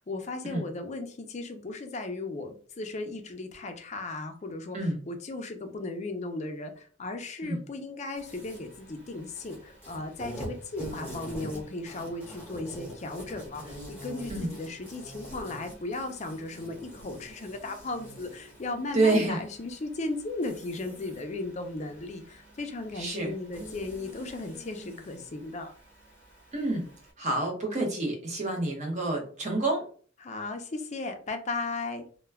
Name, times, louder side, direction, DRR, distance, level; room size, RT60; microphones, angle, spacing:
voice 1, 0.0-4.8 5.1-25.7 30.2-32.1, left 2 dB, 35° left, 6 dB, 0.4 m, -36 dB
Insect, 8.2-27.1, equal, 10° right, 1.0 m, -45 dB
voice 2, 18.9-19.4 22.9-23.3 26.5-26.9 27.2-29.9, right 2 dB, 35° right, 1 dB, 0.8 m, -28 dB
2.2 x 2.1 x 3.3 m, 0.43 s
head